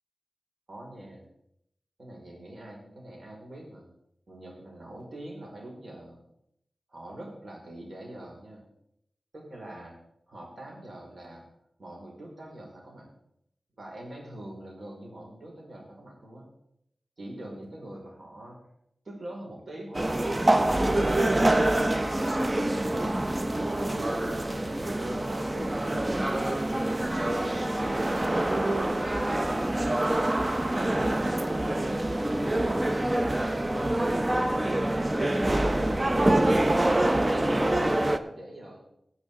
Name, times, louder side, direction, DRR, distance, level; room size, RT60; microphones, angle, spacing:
voice 1, 0.7-1.3 2.0-3.9 4.3-6.2 6.9-8.6 9.3-10.0 10.3-11.4 11.8-13.1 13.8-16.5 17.2-18.6 19.0-21.2 21.7-23.1 23.5-29.1 30.0-34.0 34.3-35.2 35.7-36.6 37.0-38.8, right 1 dB, 65° right, -2 dB, 4.9 m, -43 dB
sound 1, 19.9-38.2, right 1 dB, 30° right, 0.7 m, -26 dB
17.0 x 8.3 x 3.7 m, 0.76 s
wide cardioid pair, 60°, 0 cm